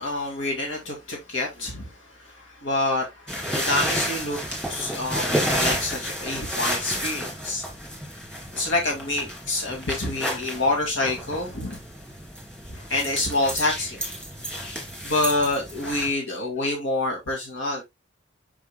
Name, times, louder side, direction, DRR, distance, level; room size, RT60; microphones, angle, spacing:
voice 1, 0.0-7.6 8.5-11.8 12.7-14.0 15.0-17.9, left 2 dB, 85° left, 2.1 m, -27 dB
sound 1, 3.3-16.1, equal, 5° left, 2.4 m, -31 dB
6.8 x 6.4 x 2.2 m
head